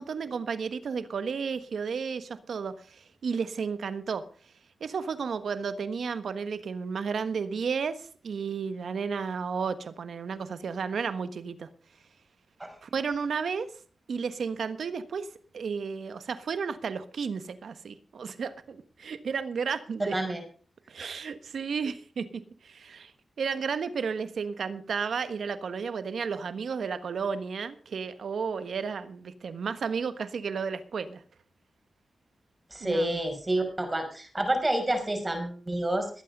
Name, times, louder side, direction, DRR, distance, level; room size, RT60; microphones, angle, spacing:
voice 1, 0.0-4.2 4.8-11.7 12.8-13.7 14.1-15.3 15.5-20.2 20.9-23.1 23.4-31.2 32.8-33.2, right 5 dB, 80° right, 12 dB, 1.4 m, -33 dB
voice 2, 20.0-20.4 21.0-21.1 32.7-36.1, right 1 dB, 25° right, 5 dB, 5.6 m, -28 dB
20.0 x 8.6 x 5.4 m, 0.42 s
cardioid pair, 55°, 0 cm